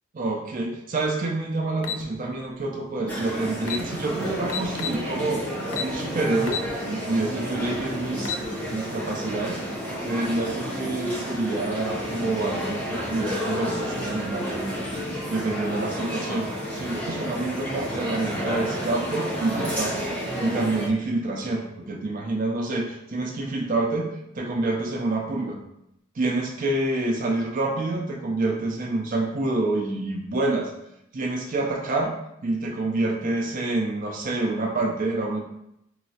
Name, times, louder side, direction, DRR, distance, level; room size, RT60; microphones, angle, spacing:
voice 1, 0.1-5.4 5.8-6.6 6.9-8.4 8.7-9.6 10.0-14.5 15.2-16.5 16.8-20.0 20.4-24.1 24.3-25.6 26.2-30.7 31.1-35.4, right 2 dB, 40° right, 0 dB, 0.4 m, -27 dB
sound 1, 1.8-2.0 3.2-3.3 3.6-3.8 4.5-5.0 5.7-5.9 6.5-6.7 7.1-7.2 8.0-8.5, left 7 dB, 85° left, 0.4 m, -30 dB
sound 2, 3.1-20.9, equal, 5° left, 0.5 m, -31 dB
4.6 x 2.0 x 2.7 m, 0.80 s
head